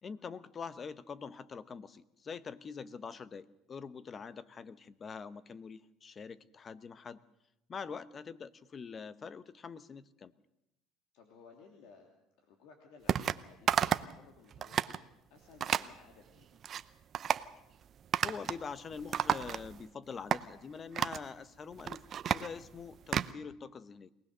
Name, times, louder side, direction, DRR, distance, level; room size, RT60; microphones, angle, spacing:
voice 1, 0.0-7.2 7.7-10.3 18.2-24.1, left 5 dB, 35° left, 15 dB, 1.0 m, -44 dB
voice 2, 11.1-12.1 12.4-16.6, left 5 dB, 75° left, 2 dB, 3.0 m, -59 dB
sound 1, 13.1-13.4 13.7-14.2 14.5-15.0 15.6-15.9 16.4-16.8 17.1-17.5 18.1-18.6 18.9-19.9 20.3-20.4 20.9-21.2 21.7-23.3, right 9 dB, 45° right, 0.7 m, -32 dB
23.0 x 19.0 x 6.6 m, 0.83 s
supercardioid pair, 100°, 0 cm